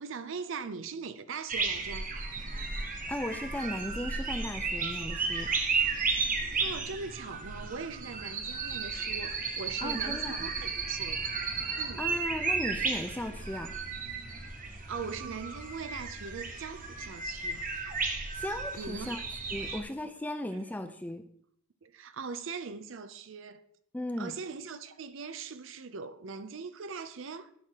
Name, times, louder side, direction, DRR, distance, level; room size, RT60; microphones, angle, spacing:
voice 1, 0.0-2.1 6.6-11.2 11.7-12.0 14.9-17.6 18.8-19.2 19.6-19.8 21.8-23.6 24.2-27.5, right 5 dB, 65° right, 0.5 m, -40 dB
sound 1, 1.5-19.8, right 4 dB, 40° right, 1.0 m, -34 dB
voice 2, 2.6-5.5 9.8-10.5 12.0-13.7 18.4-19.2 19.5-21.2 23.9-24.3, left 1 dB, 10° left, 0.4 m, -37 dB
11.0 x 6.4 x 2.9 m
head